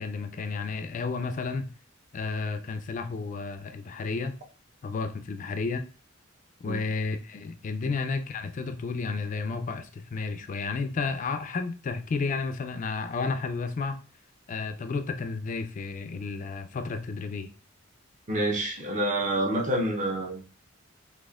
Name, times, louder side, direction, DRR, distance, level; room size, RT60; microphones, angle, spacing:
voice 1, 0.0-1.7 2.1-4.4 4.8-5.9 6.6-14.0 14.5-17.5, left 4 dB, 40° left, 0.3 m, -32 dB
voice 2, 18.3-20.4, right 1 dB, 40° right, 0.7 m, -27 dB
4.1 x 2.8 x 2.3 m
head